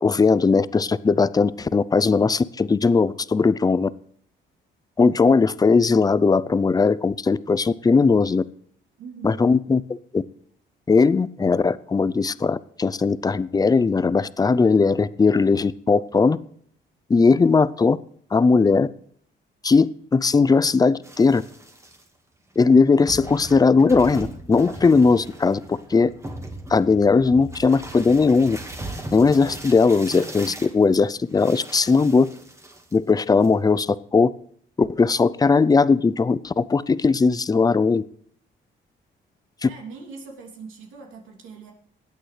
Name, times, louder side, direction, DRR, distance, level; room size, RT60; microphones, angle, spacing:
voice 1, 0.0-3.9 5.0-8.4 9.2-9.8 10.1-10.2 10.9-16.4 17.1-18.0 18.3-18.9 19.6-21.4 22.6-26.1 26.7-28.6 29.1-32.3 32.9-34.3 34.8-38.0 39.6-39.7, left 4 dB, 20° left, 17 dB, 0.5 m, -18 dB
voice 2, 9.0-9.4 39.7-41.7, right 4 dB, 90° right, 1 dB, 2.9 m, -41 dB
sound 1, 21.0-22.0 22.7-22.8 23.1-33.1 33.4-33.8, right 2 dB, 15° right, 1.7 m, -39 dB
21.0 x 8.7 x 3.3 m, 0.63 s
cardioid pair, 90°, 20 cm